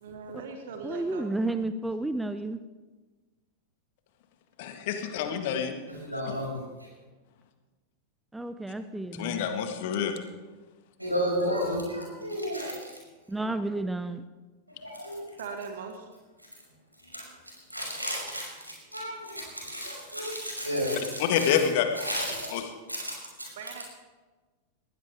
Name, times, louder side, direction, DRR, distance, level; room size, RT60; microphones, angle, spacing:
voice 1, 0.0-1.4 15.4-15.9 23.6-23.8, right 5 dB, 60° right, 5 dB, 1.7 m, -39 dB
voice 2, 0.8-2.6 8.3-9.4 13.3-14.2, right 2 dB, 5° right, 12 dB, 0.6 m, -31 dB
voice 3, 4.6-5.7 9.1-10.1 21.2-21.9 22.5-22.6, left 9 dB, 50° left, 6 dB, 1.8 m, -27 dB
voice 4, 6.0-6.6 11.0-12.7 14.8-15.2 17.1-17.2 17.7-21.5 22.0-22.6 22.9-23.8, equal, 85° right, -2 dB, 5.9 m, -32 dB
20.5 x 16.0 x 3.5 m, 1.3 s
figure-of-eight pair, 90°, 0 cm